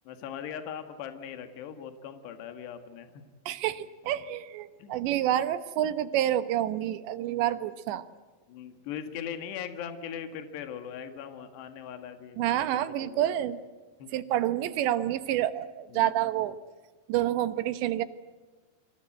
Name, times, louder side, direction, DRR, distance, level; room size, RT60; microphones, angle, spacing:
voice 1, 0.1-3.2 4.8-4.9 8.5-13.3 14.0-14.1 15.9-16.1, left 8 dB, 75° left, 8 dB, 3.8 m, -40 dB
voice 2, 3.5-8.0 12.4-13.6 14.1-16.6 17.1-18.0, right 12 dB, 80° right, 13 dB, 3.3 m, -28 dB
29.0 x 25.0 x 7.9 m, 1.3 s
omnidirectional pair, 5.1 m